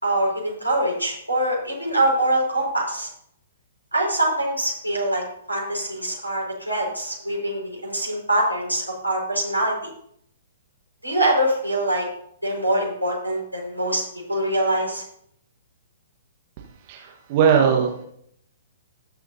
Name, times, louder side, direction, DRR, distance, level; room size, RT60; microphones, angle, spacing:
voice 1, 0.0-3.1 3.9-9.8 11.0-12.1 12.4-14.0 14.3-15.0, right 1 dB, 90° right, -2 dB, 5.1 m, -24 dB
voice 2, 16.9-18.0, right 7 dB, 40° right, 0 dB, 1.5 m, -19 dB
20.0 x 6.8 x 2.8 m, 0.70 s
figure-of-eight pair, 115°, 0 cm